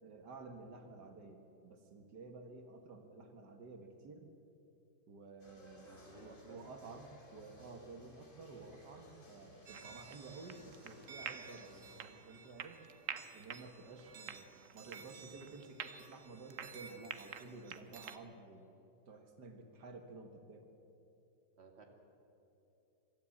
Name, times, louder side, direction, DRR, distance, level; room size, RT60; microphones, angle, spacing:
voice 1, 0.0-4.3 5.1-12.8 13.3-18.8 19.1-20.7, right 3 dB, 85° right, 5 dB, 2.1 m, -52 dB
sound 1, 5.4-12.0, left 1 dB, 30° left, 3.1 m, -61 dB
voice 2, 5.8-6.6 21.6-21.8, right 2 dB, 40° right, 2 dB, 2.4 m, -56 dB
sound 2, 9.7-18.2, right 8 dB, 55° right, 1.1 m, -49 dB
23.5 x 13.0 x 8.4 m, 2.9 s
omnidirectional pair, 1.8 m